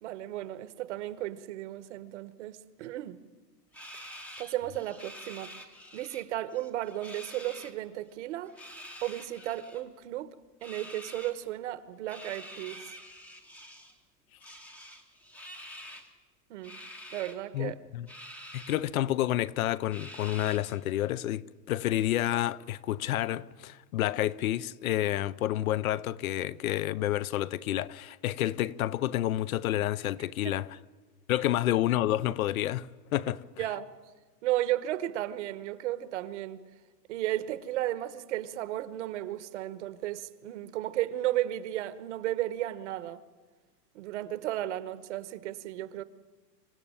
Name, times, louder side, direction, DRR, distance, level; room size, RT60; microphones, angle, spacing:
voice 1, 0.0-3.2 3.9-4.0 4.4-5.5 5.9-8.5 9.0-10.4 10.6-12.8 16.5-16.8 17.1-17.8 30.4-30.6 33.6-33.9 34.4-36.6 37.1-43.2 43.9-46.0, right 14 dB, 45° right, 1.1 m, -34 dB
sound 1, 3.7-6.2 6.5-7.7 8.5-9.8 10.6-11.3 12.1-14.0 14.4-16.1 16.6-17.3 18.1-18.8 19.2-19.3 19.9-20.8, equal, 5° left, 0.7 m, -47 dB
voice 2, 17.5-18.1 18.5-30.8 31.3-33.7, left 13 dB, 60° left, 0.7 m, -29 dB
26.5 x 15.5 x 9.0 m
supercardioid pair, 170°, 48 cm